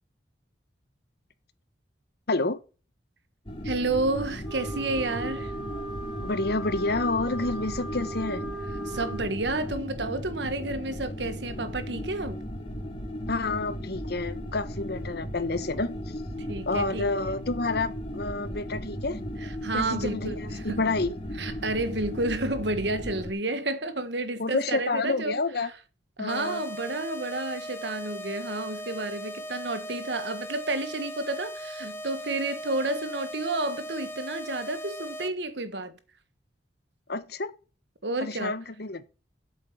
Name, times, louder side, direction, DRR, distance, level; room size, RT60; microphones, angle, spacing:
voice 1, 2.3-2.6 6.2-8.4 13.3-15.9 16.7-19.2 19.7-21.1 24.4-25.7 26.2-26.6 37.1-37.5 38.2-39.1, left 3 dB, 60° left, 1.1 m, -29 dB
sound 1, 3.5-23.3, equal, 30° left, 2.6 m, -36 dB
voice 2, 3.6-5.5 8.8-12.4 16.5-17.4 19.4-20.8 21.4-25.7 26.2-35.9 38.0-38.5, right 2 dB, 70° right, 1.5 m, -31 dB
Wind instrument woodwind instrument, 4.4-9.3, right 3 dB, ahead, 5.5 m, -38 dB
sound 2, 26.3-35.3, equal, 15° left, 0.9 m, -39 dB
8.1 x 7.7 x 7.0 m
head